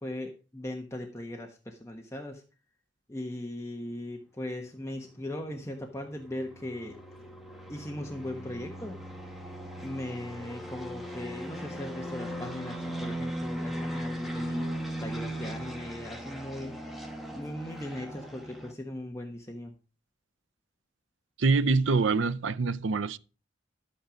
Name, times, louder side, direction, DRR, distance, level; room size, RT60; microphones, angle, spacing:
voice 1, 0.0-2.4 3.1-7.3 7.7-9.0 9.8-14.6 15.0-16.7 17.3-19.7, left 1 dB, 15° left, 1.2 m, -38 dB
sound 1, 5.4-18.7, equal, ahead, 1.9 m, -38 dB
voice 2, 21.4-23.2, right 4 dB, 80° right, 0.6 m, -25 dB
12.5 x 8.8 x 5.1 m
head